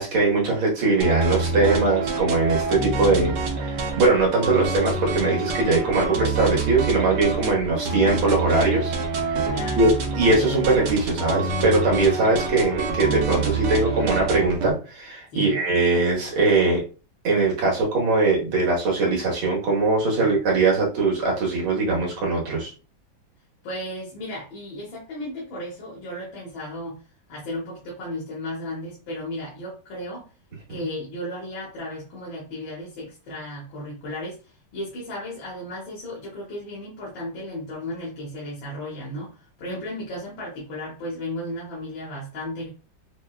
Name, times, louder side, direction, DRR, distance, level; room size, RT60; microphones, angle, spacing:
voice 1, 0.0-3.4 3.6-8.9 9.3-16.8 17.2-22.7, right 3 dB, 90° right, -2 dB, 2.1 m, -21 dB
sound 1, 1.0-14.7, right 3 dB, 65° right, 1.3 m, -27 dB
voice 2, 9.5-9.9 15.3-15.6 20.2-20.4 23.6-27.0 27.3-30.3 30.7-42.7, left 1 dB, 75° left, -6 dB, 2.0 m, -34 dB
5.9 x 2.2 x 2.3 m, 0.35 s
omnidirectional pair, 2.1 m